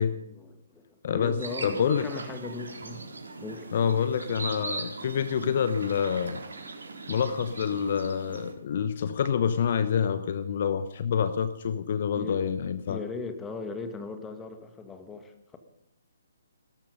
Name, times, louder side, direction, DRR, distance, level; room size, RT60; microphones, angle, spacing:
voice 1, 0.0-3.0 3.4-3.7 12.2-12.4 12.9-15.6, left 4 dB, 10° left, 7 dB, 1.8 m, -39 dB
voice 2, 1.0-2.0 3.7-6.4 7.1-13.0, left 7 dB, 45° left, 12 dB, 0.9 m, -27 dB
sound 1, 1.4-8.5, right 3 dB, 65° right, 4.3 m, -40 dB
18.0 x 13.5 x 5.4 m, 0.80 s
figure-of-eight pair, 130°, 0 cm